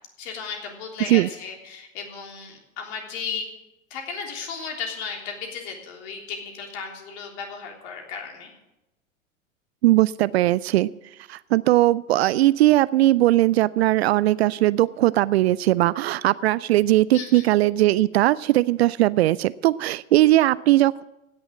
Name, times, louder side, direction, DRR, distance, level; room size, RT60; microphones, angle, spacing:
voice 1, 0.2-3.5 3.9-8.5 17.1-17.5, left 6 dB, 50° left, 2 dB, 3.4 m, -35 dB
voice 2, 9.8-10.9 11.3-21.0, right 16 dB, 50° right, 19 dB, 0.4 m, -19 dB
16.5 x 7.0 x 7.6 m, 0.94 s
figure-of-eight pair, 95°, 40 cm